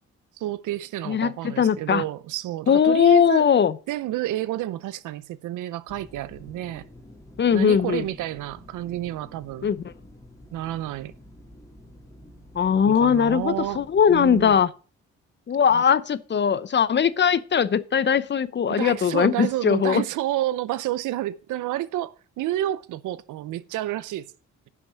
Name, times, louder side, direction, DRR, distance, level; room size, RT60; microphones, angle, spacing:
voice 1, 0.4-3.4 3.9-6.9 7.5-9.7 10.5-11.1 12.8-14.5 15.7-15.8 18.7-24.3, right 14 dB, 85° right, 0.7 m, -30 dB
voice 2, 1.1-2.0 2.7-3.8 7.4-8.1 9.6-9.8 12.5-14.7 15.5-20.0, left 7 dB, 35° left, 0.7 m, -20 dB
sound 1, 5.9-14.6, left 1 dB, 10° left, 2.9 m, -49 dB
10.5 x 6.0 x 6.1 m
cardioid pair, 90°, 30 cm